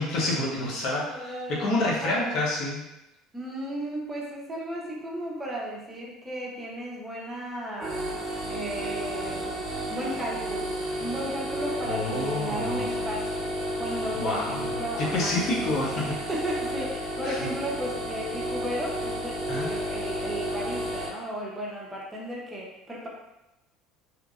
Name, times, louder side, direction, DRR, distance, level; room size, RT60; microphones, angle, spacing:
voice 1, 0.0-2.8 11.8-13.0 14.1-16.0 17.2-17.4 19.5-19.7, left 2 dB, 60° left, -4 dB, 0.8 m, -28 dB
voice 2, 1.0-2.4 3.3-8.0 8.5-9.5 9.9-13.5 13.8-15.3 16.0-23.1, right 1 dB, 15° right, -4 dB, 0.7 m, -35 dB
sound 1, 7.8-21.1, equal, 30° right, 1.2 m, -32 dB
2.9 x 2.5 x 2.4 m, 0.93 s
supercardioid pair, 95°, 0 cm